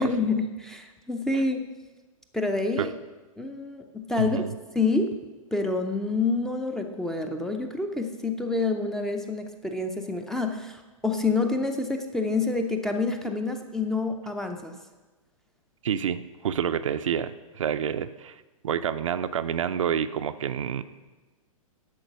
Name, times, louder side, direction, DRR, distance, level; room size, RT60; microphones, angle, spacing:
voice 1, 0.0-1.6 2.3-2.9 3.4-4.4 4.7-5.2 5.5-14.7, left 3 dB, 5° left, 5 dB, 0.4 m, -27 dB
voice 2, 4.2-4.5 15.8-18.4 18.6-20.8, right 8 dB, 60° right, 11 dB, 0.5 m, -28 dB
10.5 x 4.5 x 6.2 m, 1.2 s
figure-of-eight pair, 115°, 18 cm